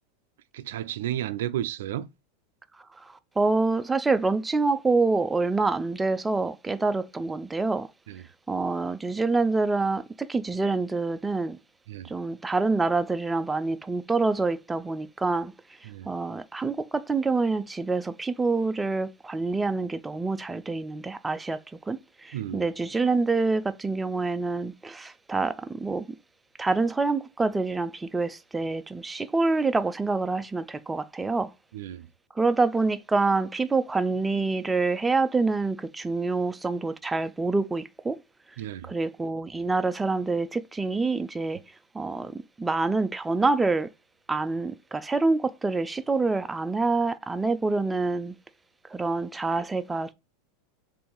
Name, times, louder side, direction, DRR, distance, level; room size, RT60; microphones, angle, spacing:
voice 1, 0.5-2.1 8.1-8.2 11.9-12.1 15.8-16.1 22.3-22.6 31.7-32.1 38.6-38.9, right 12 dB, 75° right, 0.4 m, -33 dB
voice 2, 3.1-7.9 8.5-11.6 12.1-15.5 16.1-26.2 26.6-31.5 32.4-38.2 38.9-41.6 41.9-43.9 44.3-48.3 48.9-50.1, right 3 dB, 10° right, 0.4 m, -26 dB
3.6 x 2.6 x 4.5 m
hypercardioid pair, 115°, 0 cm